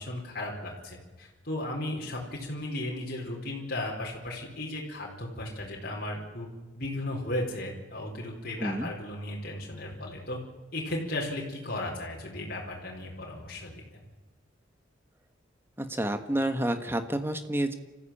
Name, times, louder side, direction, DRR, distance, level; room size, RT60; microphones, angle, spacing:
voice 1, 0.0-6.5 6.8-10.4 10.7-14.0, left 1 dB, 50° left, -2 dB, 4.6 m, -35 dB
voice 2, 8.6-8.9 15.8-17.8, right 1 dB, 10° right, 8 dB, 1.4 m, -29 dB
26.0 x 15.0 x 8.8 m, 1.2 s
head